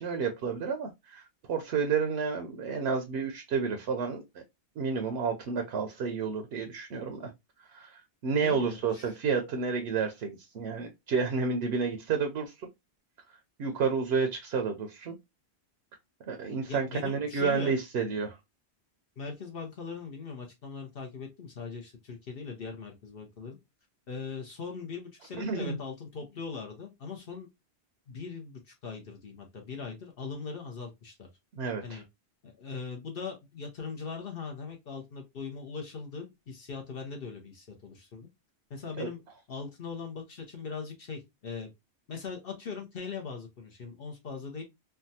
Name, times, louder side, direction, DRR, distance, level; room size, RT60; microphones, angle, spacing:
voice 1, 0.0-4.4 4.8-7.3 7.7-12.7 13.6-15.1 16.3-18.4 25.3-25.8 31.6-32.0 39.0-39.1, right 5 dB, 70° right, 0.9 m, -30 dB
voice 2, 8.3-9.1 16.7-17.8 19.2-23.6 24.1-27.5 28.1-31.3 31.8-32.0 32.4-38.3 38.7-39.2 39.5-41.7 42.1-44.6, left 5 dB, 60° left, 0.9 m, -40 dB
3.4 x 2.2 x 2.7 m
omnidirectional pair, 1.1 m